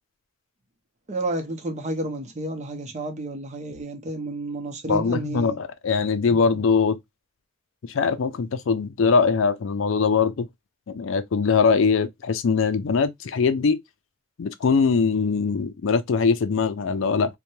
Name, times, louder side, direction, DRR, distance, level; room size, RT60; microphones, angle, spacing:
voice 1, 1.1-5.6 6.3-6.6, right 2 dB, 35° right, 0.6 m, -31 dB
voice 2, 4.9-7.0 7.9-10.5 10.9-13.8 14.4-17.4, left 5 dB, 65° left, 0.4 m, -22 dB
3.0 x 2.2 x 2.6 m
head